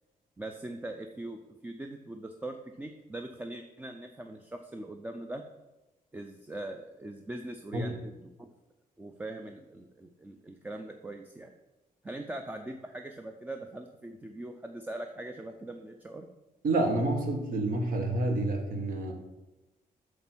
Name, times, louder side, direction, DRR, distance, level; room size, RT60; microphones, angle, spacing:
voice 1, 0.4-5.4 6.1-7.9 8.2-8.5 9.0-11.5 12.0-16.3, right 1 dB, 10° right, 5 dB, 0.4 m, -41 dB
voice 2, 16.6-19.2, right 2 dB, 70° right, 3 dB, 1.3 m, -28 dB
8.4 x 3.5 x 6.0 m, 1.1 s
wide cardioid pair, 160°, 15 cm